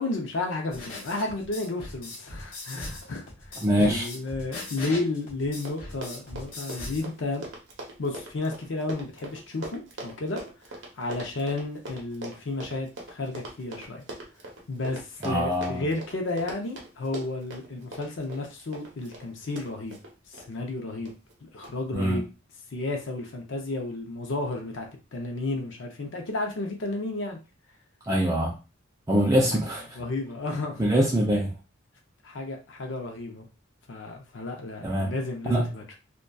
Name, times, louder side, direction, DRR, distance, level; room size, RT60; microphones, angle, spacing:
voice 1, 0.0-7.4 8.0-10.4 11.0-14.0 14.7-20.0 20.3-21.1 21.5-22.2 22.7-27.4 30.0-30.9 32.2-33.5 33.9-35.8, left 2 dB, 65° left, 2 dB, 0.5 m, -32 dB
sound 1, 0.7-7.0, left 2 dB, 80° left, 0.8 m, -40 dB
voice 2, 3.6-4.1 15.2-15.8 21.9-22.2 28.0-28.5 29.1-30.0 30.8-31.5 34.8-35.1 35.5-35.7, equal, 15° right, -3 dB, 0.4 m, -24 dB
Run, 5.2-5.3 5.5-20.5 21.1-21.3 21.6-21.7, right 1 dB, 65° right, 0.7 m, -41 dB
2.6 x 2.2 x 2.2 m, 0.30 s
head